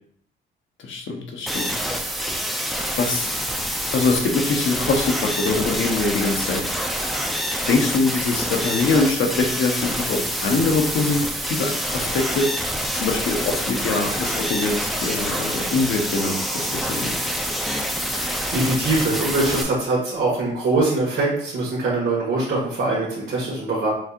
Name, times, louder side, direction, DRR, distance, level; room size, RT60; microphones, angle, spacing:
voice 1, 0.8-1.7 3.0-3.3 3.9-6.6 7.7-12.6 12.9-17.1, left 3 dB, 70° left, 2 dB, 0.9 m, -23 dB
sound 1, 1.5-19.6, equal, ahead, 0.5 m, -26 dB
voice 2, 18.1-23.9, right 2 dB, 70° right, -8 dB, 1.6 m, -23 dB
6.3 x 2.8 x 2.5 m, 0.64 s
cardioid pair, 115°, 20 cm